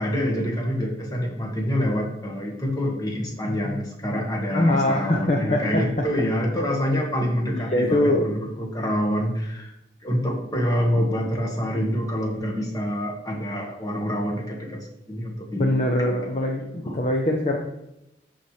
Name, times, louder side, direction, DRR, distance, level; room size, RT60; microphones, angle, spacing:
voice 1, 0.0-9.7 10.0-17.0, equal, 20° left, 0 dB, 1.4 m, -27 dB
voice 2, 4.5-5.8 7.5-8.3 15.6-17.6, left 1 dB, 40° left, 1 dB, 0.7 m, -22 dB
12.5 x 4.3 x 3.2 m, 0.87 s
head